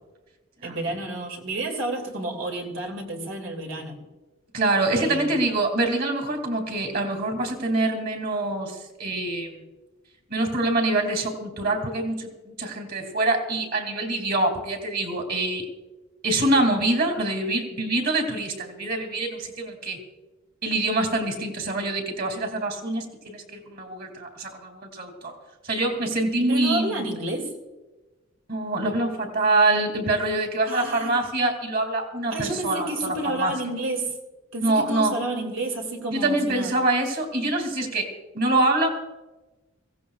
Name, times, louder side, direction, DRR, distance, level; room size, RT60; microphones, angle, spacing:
voice 1, 0.6-4.0 5.0-5.4 26.4-27.5 30.7-31.3 32.3-34.1 34.5-36.7, right 2 dB, 90° right, 2 dB, 2.6 m, -30 dB
voice 2, 4.5-9.6 10.3-15.6 16.2-20.0 20.6-25.3 25.7-27.0 28.5-33.5 34.6-35.2 36.1-38.9, right 2 dB, 55° right, 4 dB, 2.6 m, -25 dB
23.5 x 16.5 x 2.4 m, 1.2 s
head